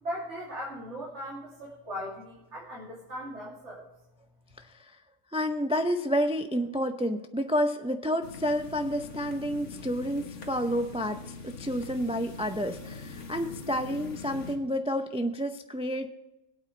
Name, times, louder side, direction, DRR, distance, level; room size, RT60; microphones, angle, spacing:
voice 1, 0.0-3.8, equal, 65° right, -6 dB, 3.2 m, -38 dB
voice 2, 5.3-16.1, equal, 10° right, 6 dB, 0.4 m, -30 dB
sound 1, 8.2-14.6, left 4 dB, 70° left, 1.7 m, -43 dB
21.0 x 8.8 x 3.2 m, 0.93 s
omnidirectional pair, 1.3 m